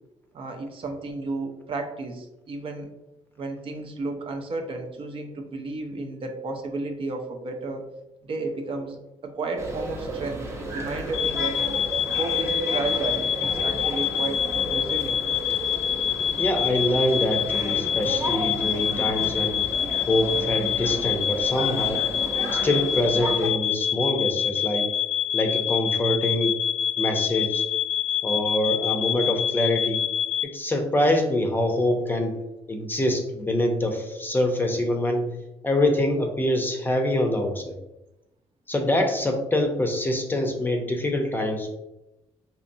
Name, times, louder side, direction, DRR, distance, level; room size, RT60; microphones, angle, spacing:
voice 1, 0.3-2.9 3.4-7.9 8.2-9.0 9.2-11.6 12.2-15.2, right 3 dB, 50° right, 4 dB, 0.6 m, -32 dB
sound 1, 9.6-23.5, right 1 dB, 25° right, 0.8 m, -33 dB
sound 2, 11.1-30.4, left 9 dB, 85° left, 0.6 m, -26 dB
voice 2, 16.4-19.6 20.1-22.0 22.5-24.9 25.3-26.5 27.0-27.6 28.2-30.0 30.4-32.3 32.7-35.3 35.6-37.7 38.7-41.7, left 1 dB, 15° left, 3 dB, 0.6 m, -25 dB
4.2 x 2.8 x 2.6 m, 0.93 s
cardioid pair, 100°, 12 cm